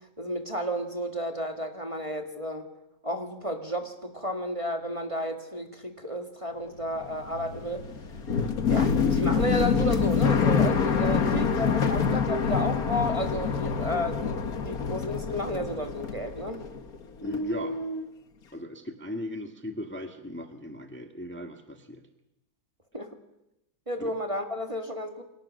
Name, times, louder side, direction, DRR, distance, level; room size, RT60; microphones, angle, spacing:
voice 1, 0.2-2.7 3.0-7.8 8.7-16.6 22.9-23.1 23.9-25.2, equal, 20° right, 4 dB, 1.9 m, -32 dB
sound 1, 6.8-17.0 17.2-18.1, left 6 dB, 55° left, 1.9 m, -26 dB
voice 2, 17.2-17.8 18.5-22.0 24.0-24.1, left 1 dB, 5° left, 5 dB, 1.6 m, -37 dB
28.5 x 24.5 x 6.5 m, 0.89 s
omnidirectional pair, 1.9 m